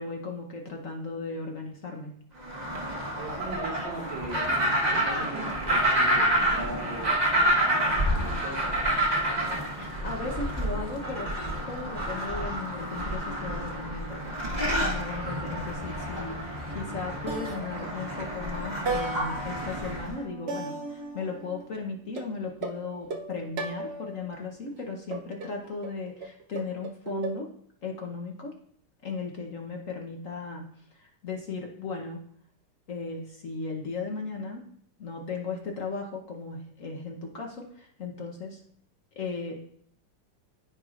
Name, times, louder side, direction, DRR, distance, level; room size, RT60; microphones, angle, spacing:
voice 1, 0.0-2.1 9.7-11.3 11.7-14.2 14.5-27.5 27.8-28.5 29.0-30.7 30.9-32.2 32.9-34.6 35.0-38.6 39.2-39.7, left 4 dB, 50° left, 1 dB, 1.1 m, -36 dB
sound 1, 2.4-20.1, right 1 dB, 25° right, 1.3 m, -28 dB
voice 2, 3.1-8.8, right 2 dB, 70° right, -4 dB, 2.7 m, -40 dB
sound 2, 16.7-17.0 17.3-18.3 18.9-21.7 22.2-24.3 25.1-27.4, right 3 dB, 55° right, 0.7 m, -36 dB
13.5 x 4.7 x 2.5 m, 0.63 s
omnidirectional pair, 2.0 m